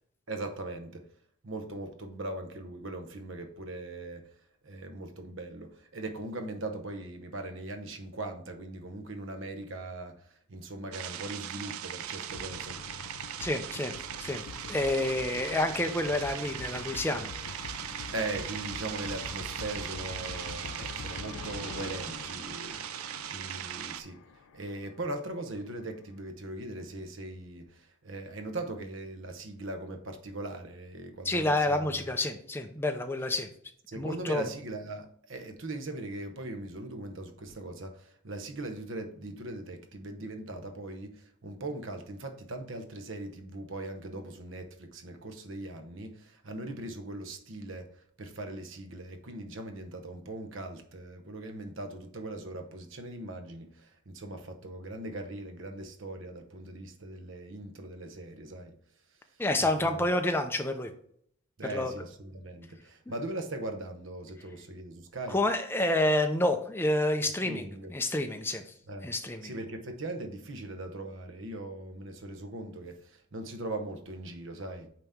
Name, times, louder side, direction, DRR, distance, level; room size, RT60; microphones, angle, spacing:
voice 1, 0.3-1.1 1.4-4.3 4.6-12.8 18.1-22.8 23.3-24.2 24.5-32.0 33.9-58.8 59.6-60.0 61.6-65.4 67.3-67.9 68.9-69.1 69.4-74.9, right 2 dB, 60° right, 0.9 m, -40 dB
sound 1, 10.9-24.0, right 10 dB, 80° right, 0.4 m, -39 dB
sound 2, 12.3-25.0, left 5 dB, 90° left, 0.5 m, -44 dB
voice 2, 13.4-14.4 14.7-17.3 31.2-33.5 34.0-34.4 59.4-60.9 61.7-61.9 65.3-68.7 69.0-69.5, left 1 dB, 10° left, 0.5 m, -29 dB
8.9 x 3.0 x 3.6 m
head